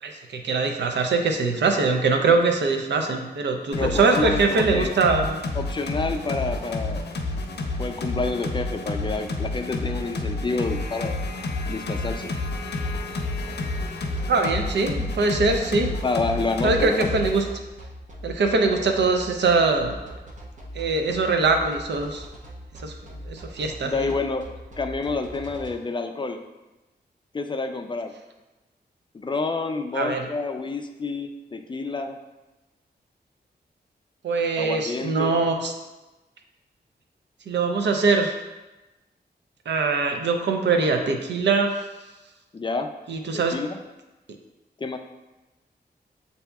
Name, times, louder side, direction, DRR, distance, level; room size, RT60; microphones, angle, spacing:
voice 1, 0.0-5.4 14.3-15.9 16.6-17.5 18.2-20.1 20.7-22.2 22.8-22.9 23.3-24.1 29.9-30.3 34.2-35.7 37.5-38.4 39.7-41.7 43.1-43.6, right 4 dB, 85° right, 4 dB, 0.6 m, -22 dB
sound 1, 3.7-17.4, left 2 dB, 70° left, 0.6 m, -30 dB
voice 2, 3.7-4.9 5.6-7.1 7.8-11.2 11.7-12.3 16.0-17.1 23.8-24.5 24.8-26.4 27.3-28.1 29.1-32.2 34.6-35.4 42.5-42.9 43.3-43.8 44.8-45.0, left 3 dB, 25° left, 6 dB, 0.3 m, -28 dB
sound 2, 12.5-25.7, right 1 dB, 45° right, 0.8 m, -41 dB
7.8 x 2.7 x 2.3 m, 1.1 s
wide cardioid pair, 90°, 18 cm